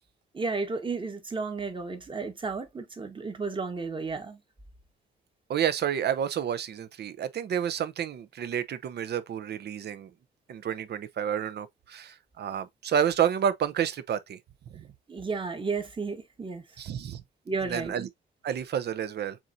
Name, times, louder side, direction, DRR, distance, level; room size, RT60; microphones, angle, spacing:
voice 1, 0.3-4.4 15.1-16.6 17.5-17.9, right 4 dB, 25° right, 1.3 m, -33 dB
voice 2, 5.5-10.1 10.5-14.4 14.7-14.9 16.8-17.2 17.6-18.1 18.4-19.4, right 9 dB, 55° right, 0.7 m, -30 dB
7.2 x 2.7 x 2.6 m
cardioid pair, 90°, 20 cm